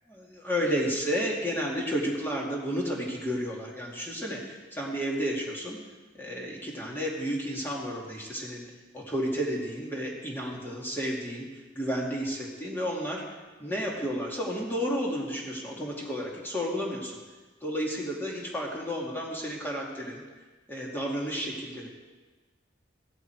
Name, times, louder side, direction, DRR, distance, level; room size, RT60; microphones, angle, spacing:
voice 1, 0.2-5.8 6.2-8.6 8.9-11.5 11.7-13.2 13.6-17.2 17.6-20.2 20.7-21.9, equal, 10° left, -3 dB, 2.3 m, -32 dB
16.0 x 13.5 x 4.7 m, 1.3 s
head